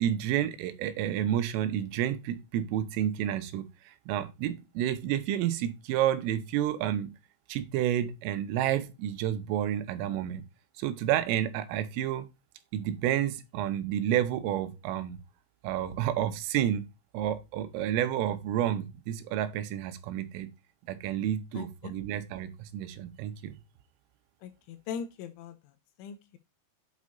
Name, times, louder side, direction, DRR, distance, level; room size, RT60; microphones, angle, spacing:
voice 1, 0.0-7.1 7.5-10.4 10.8-12.3 12.7-15.2 15.6-16.9 17.1-20.5 20.9-23.6, right 11 dB, 85° right, 3.4 m, -30 dB
voice 2, 21.5-21.9 24.4-25.5 26.0-26.4, left 7 dB, 85° left, 2.8 m, -40 dB
8.4 x 6.4 x 2.6 m
omnidirectional pair, 5.9 m